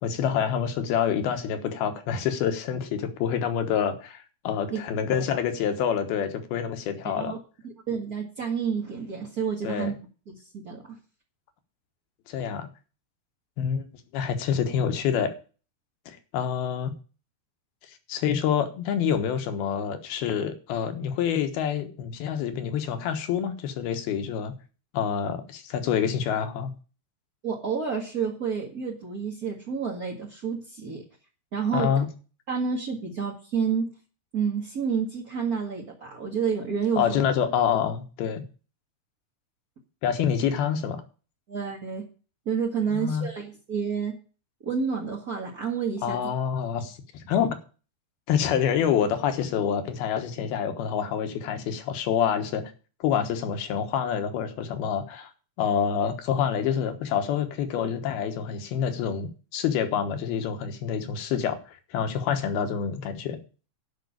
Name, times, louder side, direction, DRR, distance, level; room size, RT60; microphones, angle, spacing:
voice 1, 0.0-7.3 9.6-9.9 12.3-12.7 13.6-13.9 14.1-15.3 16.1-16.9 17.9-24.5 24.9-26.7 31.7-32.1 37.0-38.4 40.0-41.0 42.9-43.3 46.0-47.6 48.3-52.6 53.0-55.3 55.6-63.4, left 8 dB, 75° left, 7 dB, 3.1 m, -27 dB
voice 2, 7.0-7.4 7.9-10.0 10.3-10.8 27.4-31.0 31.5-32.0 32.5-33.9 34.3-37.2 41.5-42.0 42.4-44.1 44.6-46.3, right 6 dB, 40° right, -2 dB, 1.2 m, -29 dB
10.5 x 5.9 x 8.6 m, 0.36 s
omnidirectional pair, 4.6 m